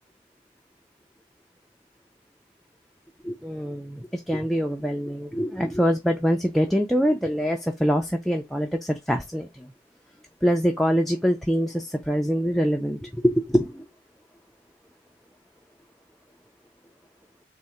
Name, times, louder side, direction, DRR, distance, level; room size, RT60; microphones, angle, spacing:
voice 1, 3.2-9.7 10.4-13.8, equal, ahead, 0.3 m, -24 dB
3.7 x 2.1 x 4.2 m
head